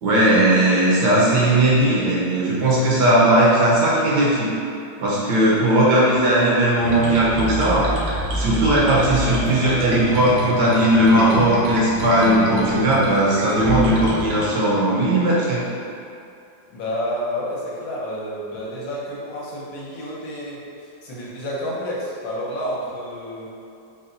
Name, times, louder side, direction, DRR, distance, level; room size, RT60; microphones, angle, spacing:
voice 1, 0.0-4.5 5.0-7.9 8.3-15.6, right 1 dB, 70° right, -6 dB, 1.1 m, -18 dB
sound 1, 6.8-14.5, right 1 dB, 90° right, 1.5 m, -27 dB
voice 2, 16.7-23.5, equal, 75° left, -6 dB, 1.5 m, -30 dB
4.1 x 2.2 x 3.7 m, 2.6 s
omnidirectional pair, 2.1 m